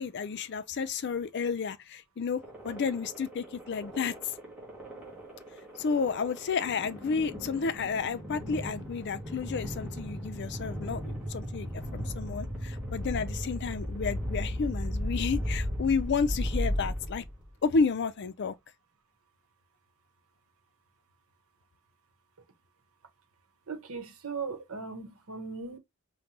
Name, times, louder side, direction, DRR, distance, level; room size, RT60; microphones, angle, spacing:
voice 1, 0.0-4.2 5.8-11.7 11.9-17.2 17.6-18.5, left 5 dB, 50° left, 0.4 m, -31 dB
sound 1, 2.4-17.5, equal, 5° right, 2.0 m, -36 dB
voice 2, 23.7-25.8, right 5 dB, 75° right, 1.0 m, -38 dB
5.2 x 2.2 x 2.9 m
head